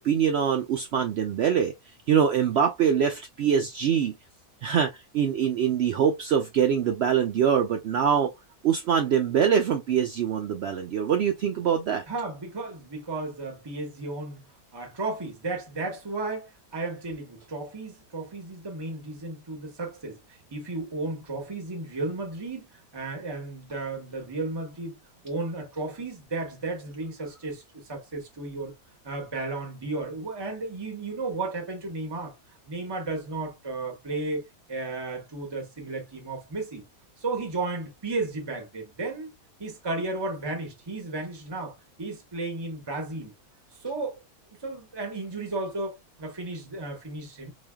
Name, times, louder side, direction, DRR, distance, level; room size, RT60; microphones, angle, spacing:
voice 1, 0.0-1.7 2.1-4.1 4.6-8.3 8.6-12.0, right 8 dB, 80° right, 0.5 m, -24 dB
voice 2, 12.1-14.5 14.7-20.2 20.5-22.7 22.9-25.0 25.2-28.7 29.0-32.3 32.7-36.8 37.2-39.3 39.6-43.3 43.8-44.2 44.6-47.5, right 3 dB, 20° right, 0.9 m, -34 dB
3.3 x 3.1 x 2.2 m
omnidirectional pair, 1.6 m